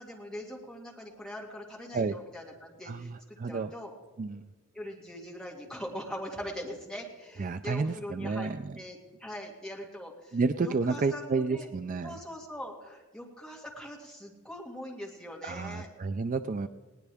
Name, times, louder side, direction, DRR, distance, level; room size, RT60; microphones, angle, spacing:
voice 1, 0.0-3.9 4.7-11.7 12.0-15.9, equal, 5° left, -1 dB, 2.2 m, -42 dB
voice 2, 2.9-3.7 4.2-4.4 7.4-8.8 10.3-12.2 15.4-16.7, right 4 dB, 40° right, 11 dB, 0.4 m, -31 dB
20.0 x 18.0 x 3.5 m, 1.3 s
head